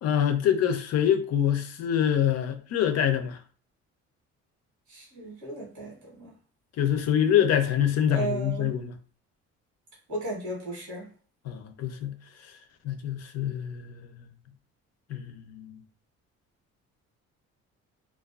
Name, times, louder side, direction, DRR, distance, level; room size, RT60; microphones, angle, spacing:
voice 1, 0.0-3.4 6.8-8.9 11.5-12.1 12.8-14.2 15.1-15.8, left 9 dB, 60° left, 0.5 m, -25 dB
voice 2, 4.9-6.3 8.1-8.7 10.1-11.1, right 2 dB, 75° right, 1.2 m, -35 dB
2.3 x 2.3 x 2.3 m
cardioid pair, 85°, 29 cm